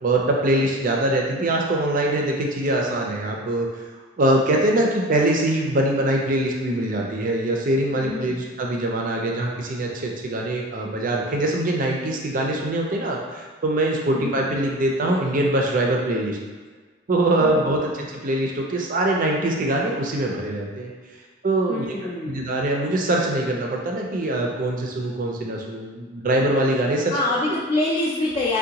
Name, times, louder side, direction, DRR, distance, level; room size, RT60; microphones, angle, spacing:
voice 1, 0.0-3.7 4.2-16.4 17.1-20.9 21.4-21.8 22.2-27.1 27.5-27.6, right 1 dB, 45° right, 0 dB, 0.4 m, -23 dB
voice 2, 8.0-8.3 14.1-14.4 17.4-17.6 21.7-22.5 27.1-28.6, left 2 dB, 25° left, -7 dB, 0.4 m, -25 dB
3.6 x 2.2 x 2.8 m, 1.5 s
head